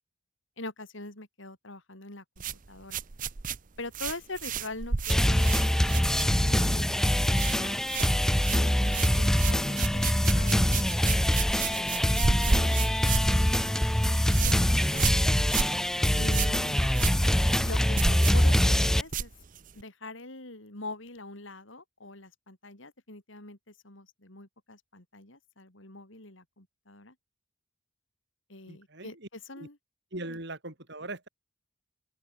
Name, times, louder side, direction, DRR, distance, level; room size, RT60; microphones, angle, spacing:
voice 1, 0.6-3.0 3.8-7.8 8.5-10.9 11.7-13.0 13.3-13.8 14.4-15.1 16.2-19.3 19.7-27.1 28.5-29.8 30.3-30.4, left 2 dB, 65° left, 4.6 m, -44 dB
sound 1, 2.4-6.7 7.0-7.6 7.8-19.8, right 5 dB, 40° right, 0.8 m, -33 dB
sound 2, 5.1-19.0, equal, ahead, 0.4 m, -24 dB
voice 2, 28.7-29.1 29.6-29.7 30.1-31.3, right 2 dB, 55° right, 4.6 m, -40 dB
open air
head